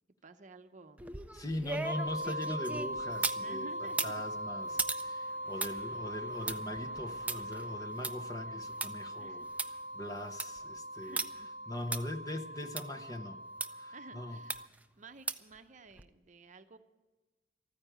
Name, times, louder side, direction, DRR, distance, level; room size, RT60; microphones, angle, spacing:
voice 1, 0.2-1.0 3.4-4.3 5.6-5.9 9.2-9.5 11.0-11.5 13.9-16.8, right 3 dB, 45° right, 8 dB, 0.7 m, -53 dB
sound 1, 1.0-3.4 3.9-8.9 9.3-9.4 9.6-9.7 10.1-10.6 11.2-11.3 11.9-12.0 12.8-12.9 13.6-13.7 14.5-14.8 15.3-15.6 16.0-16.1, right 3 dB, 10° right, 0.4 m, -38 dB
voice 2, 1.3-9.4 9.9-11.2 11.7-13.4 13.7-14.4, left 1 dB, 20° left, 6 dB, 0.8 m, -41 dB
sound 2, 1.8-14.7, equal, 75° left, 0.6 m, -41 dB
14.0 x 9.5 x 9.0 m, 1.1 s
head